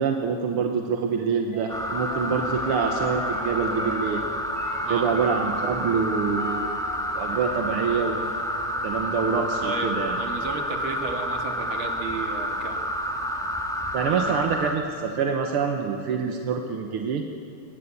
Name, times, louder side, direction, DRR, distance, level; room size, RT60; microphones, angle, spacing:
voice 1, 0.0-4.2 4.9-6.7 7.2-8.3 8.8-10.2 13.9-17.2, right 6 dB, 85° right, 4 dB, 2.1 m, -26 dB
sound 1, 1.5-8.3, left 1 dB, 35° left, 8.6 m, -42 dB
sound 2, 1.7-14.7, equal, ahead, 1.7 m, -29 dB
voice 2, 9.6-12.8 14.1-14.4, right 4 dB, 65° right, 4 dB, 2.6 m, -33 dB
21.5 x 18.5 x 8.4 m, 2.6 s
omnidirectional pair, 2.4 m